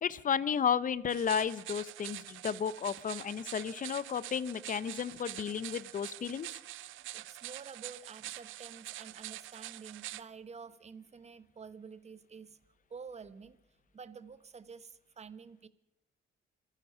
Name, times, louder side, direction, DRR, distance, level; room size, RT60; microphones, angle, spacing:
voice 1, 0.0-6.5, left 7 dB, 40° left, 18 dB, 0.7 m, -33 dB
sound 1, 1.1-10.2, right 16 dB, 80° right, 0.5 m, -45 dB
voice 2, 7.1-12.6 12.9-13.6 13.9-15.7, right 5 dB, 35° right, 14 dB, 1.0 m, -49 dB
25.5 x 10.0 x 5.6 m, 0.88 s
cardioid pair, 90°, 20 cm